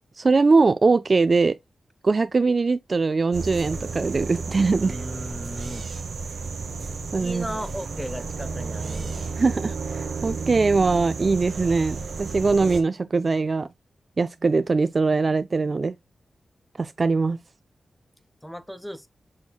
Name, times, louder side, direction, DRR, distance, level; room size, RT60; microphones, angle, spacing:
voice 1, 0.2-1.6 2.0-5.0 7.1-7.5 9.4-13.7 14.2-15.9 16.8-17.4, right 4 dB, 45° right, 0.3 m, -21 dB
sound 1, 3.3-12.8, right 4 dB, 70° right, 0.8 m, -32 dB
voice 2, 4.7-5.9 6.8-9.3 18.4-19.1, equal, 5° left, 0.6 m, -36 dB
7.0 x 3.2 x 2.3 m
wide cardioid pair, 85°, 0 cm